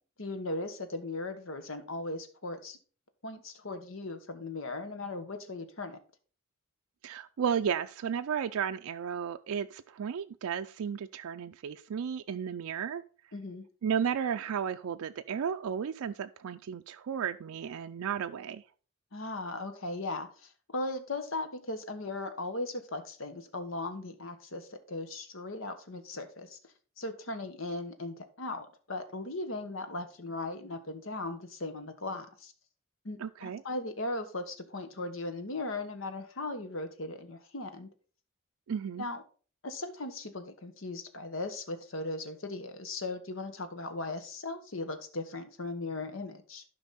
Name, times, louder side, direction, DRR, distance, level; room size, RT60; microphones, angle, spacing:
voice 1, 0.2-2.8 3.2-6.0 13.3-13.7 19.1-26.6 27.0-32.5 33.0-37.9 39.0-39.2 39.6-46.6, left 2 dB, 65° left, 9 dB, 1.2 m, -38 dB
voice 2, 7.0-13.0 13.8-18.6 33.2-33.6 38.7-39.1, right 7 dB, 85° right, 7 dB, 0.4 m, -33 dB
11.5 x 5.3 x 4.1 m, 0.40 s
head